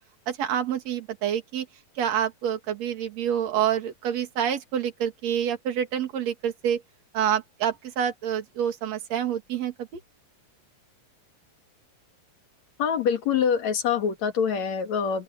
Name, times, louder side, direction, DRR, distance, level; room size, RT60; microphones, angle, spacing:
voice 1, 0.3-1.7 2.0-6.8 7.1-9.9, right 9 dB, 55° right, 3.2 m, -27 dB
voice 2, 12.8-15.2, left 7 dB, 55° left, 3.1 m, -25 dB
open air
omnidirectional pair, 4.0 m